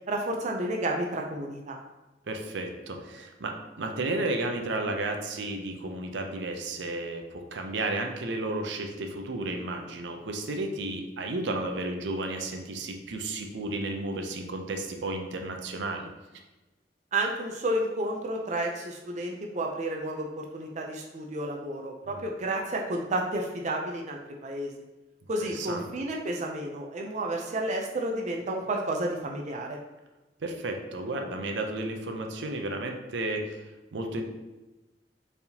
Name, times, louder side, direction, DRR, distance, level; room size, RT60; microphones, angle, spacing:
voice 1, 0.1-1.8 17.1-24.7 25.3-29.8, right 1 dB, 40° right, 1 dB, 0.5 m, -31 dB
voice 2, 2.3-16.1 22.1-22.2 25.4-25.9 30.4-33.7 33.9-34.2, right 2 dB, 85° right, 4 dB, 0.6 m, -33 dB
4.5 x 3.5 x 2.8 m, 1.1 s
head